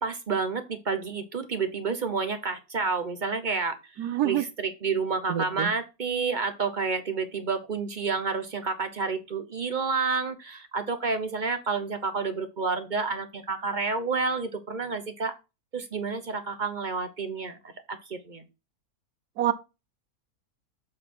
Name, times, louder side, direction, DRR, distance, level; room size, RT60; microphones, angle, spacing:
voice 1, 0.0-15.3 15.7-18.5, right 4 dB, 40° right, 0.7 m, -30 dB
voice 2, 4.0-4.4 5.3-5.7 19.4-19.5, right 12 dB, 80° right, 1.3 m, -26 dB
7.7 x 4.0 x 4.4 m
omnidirectional pair, 1.7 m